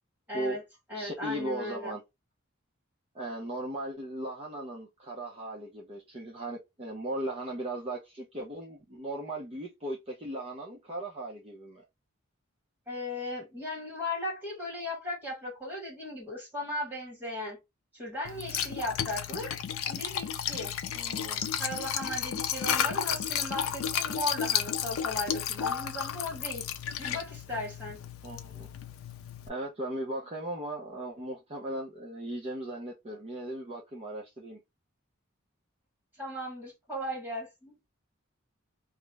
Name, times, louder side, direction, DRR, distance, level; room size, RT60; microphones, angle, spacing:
voice 1, 0.3-0.6 0.9-2.0 12.9-17.6 17.9-19.5 19.9-20.7 21.6-26.7 27.0-28.0 36.2-37.8, left 1 dB, 10° right, 1.4 m, -37 dB
voice 2, 0.9-2.0 3.1-11.8 20.9-21.4 28.2-28.7 29.5-34.6, right 1 dB, 30° right, 0.6 m, -37 dB
Liquid, 18.2-29.5, left 9 dB, 85° left, 0.4 m, -33 dB
2.4 x 2.0 x 3.1 m
head